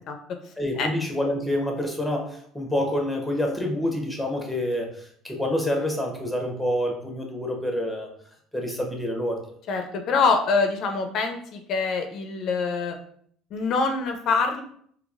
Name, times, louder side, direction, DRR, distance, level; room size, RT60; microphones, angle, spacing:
voice 1, 0.6-8.1 8.5-9.4, left 1 dB, ahead, 1 dB, 0.8 m, -27 dB
voice 2, 9.7-12.9 13.5-14.6, left 4 dB, 55° left, 5 dB, 0.4 m, -24 dB
3.8 x 2.7 x 2.4 m, 0.63 s
supercardioid pair, 105°, 0 cm